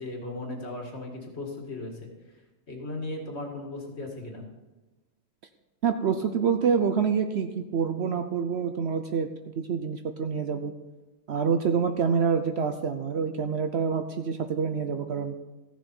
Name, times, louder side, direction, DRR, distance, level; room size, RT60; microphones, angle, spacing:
voice 1, 0.0-2.1 2.7-4.5, left 2 dB, 50° left, 1 dB, 2.2 m, -36 dB
voice 2, 5.8-9.3 9.6-10.7 11.3-15.3, right 6 dB, 60° right, 7 dB, 0.8 m, -26 dB
15.0 x 7.1 x 4.4 m, 1.1 s
omnidirectional pair, 1.4 m